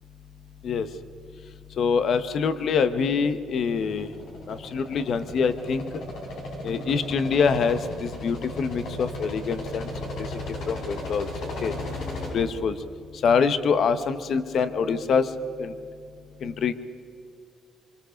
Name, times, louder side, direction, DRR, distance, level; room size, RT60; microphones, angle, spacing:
voice 1, 1.8-4.1 4.5-5.8 6.6-9.9 10.2-11.3 11.6-11.7 12.3-12.8 13.2-15.3 15.6-15.7 16.4-16.7, left 5 dB, 65° left, 11 dB, 1.2 m, -25 dB
Helicopter Landing, 3.8-12.3, left 1 dB, 80° left, 7.1 m, -35 dB
27.0 x 23.5 x 5.2 m, 2.5 s
cardioid pair, 90°, 0 cm